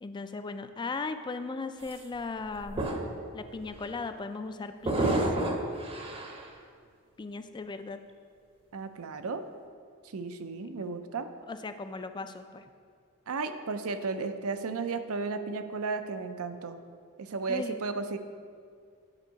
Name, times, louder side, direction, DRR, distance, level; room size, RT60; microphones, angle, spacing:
voice 1, 0.0-2.8 3.3-5.2 7.2-8.0 11.5-12.6 17.5-17.7, left 3 dB, 20° left, 9 dB, 0.3 m, -37 dB
sound 1, 1.8-2.0 2.6-3.2 3.6-3.9 4.8-6.5, right 1 dB, 25° right, 0.7 m, -30 dB
voice 2, 8.7-9.4 10.0-11.3 13.3-16.8 17.2-18.2, right 4 dB, 75° right, 9 dB, 0.5 m, -34 dB
8.9 x 4.6 x 5.1 m, 2.2 s
head